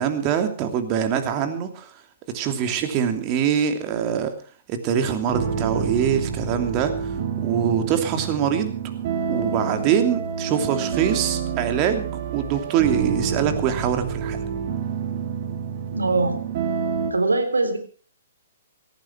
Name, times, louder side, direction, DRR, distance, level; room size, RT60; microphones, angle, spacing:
voice 1, 0.0-1.9 2.3-4.3 4.7-8.8 9.3-14.4, right 8 dB, 30° right, 7 dB, 2.9 m, -24 dB
sound 1, 5.3-17.1, right 6 dB, 50° right, 2.6 m, -28 dB
voice 2, 15.9-16.5 17.1-17.8, right 3 dB, 85° right, 7 dB, 3.8 m, -22 dB
18.0 x 15.0 x 4.7 m, 0.40 s
figure-of-eight pair, 125°, 0 cm